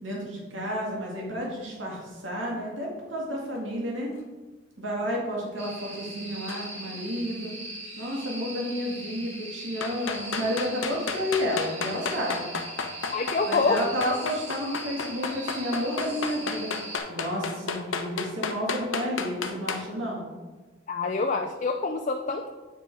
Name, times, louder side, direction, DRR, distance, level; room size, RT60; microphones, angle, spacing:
voice 1, 0.0-4.2 4.8-7.5 8.0-12.5 13.5-16.7 17.1-20.3, equal, 75° right, -2 dB, 2.3 m, -31 dB
sound 1, 5.6-17.0, right 1 dB, 35° right, 2.5 m, -40 dB
sound 2, 6.5-6.7 9.8-19.8, left 5 dB, 85° left, 0.8 m, -32 dB
voice 2, 13.1-13.9 20.9-22.5, left 3 dB, 40° left, 4 dB, 0.5 m, -26 dB
9.0 x 6.2 x 4.7 m, 1.2 s
head